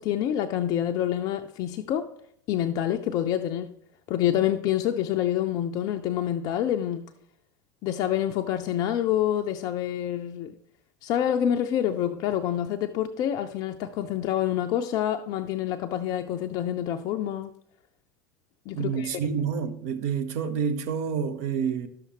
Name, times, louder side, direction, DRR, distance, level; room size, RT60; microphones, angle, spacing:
voice 1, 0.0-2.1 2.5-3.7 4.1-7.0 7.8-10.5 11.0-17.5 18.7-19.2, left 11 dB, 40° left, 0.4 m, -27 dB
voice 2, 18.7-21.9, right 7 dB, 55° right, 0.7 m, -28 dB
11.5 x 6.7 x 3.0 m
figure-of-eight pair, 80°, 10 cm